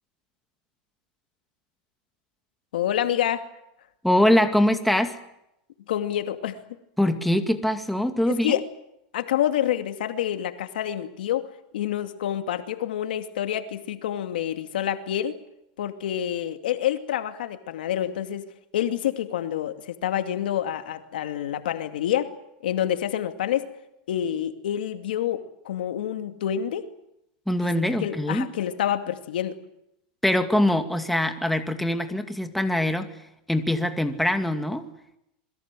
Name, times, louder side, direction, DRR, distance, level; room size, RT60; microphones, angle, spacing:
voice 1, 2.7-3.4 5.9-6.6 8.3-8.6 9.1-11.5 11.7-15.4 15.8-18.5 18.7-22.3 22.6-23.7 24.1-26.9 27.6-27.7 28.0-29.6, left 11 dB, 90° left, 7 dB, 2.4 m, -27 dB
voice 2, 4.0-5.2 7.0-8.6 27.5-28.5 30.2-33.1 33.5-34.9, left 1 dB, ahead, 6 dB, 2.3 m, -23 dB
27.0 x 22.0 x 7.7 m, 0.84 s
supercardioid pair, 130°, 5 cm